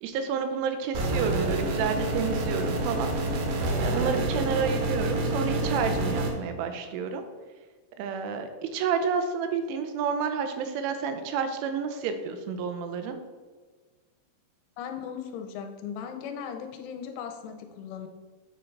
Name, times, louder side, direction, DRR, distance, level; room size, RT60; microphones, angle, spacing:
voice 1, 0.0-3.1 3.8-7.2 8.0-13.2, right 6 dB, 90° right, 7 dB, 3.1 m, -30 dB
sound 1, 0.9-6.3, right 2 dB, 70° right, 2.7 m, -28 dB
voice 2, 14.8-18.1, left 7 dB, 90° left, 5 dB, 3.1 m, -37 dB
8.5 x 3.2 x 5.6 m, 1.4 s
omnidirectional pair, 5.5 m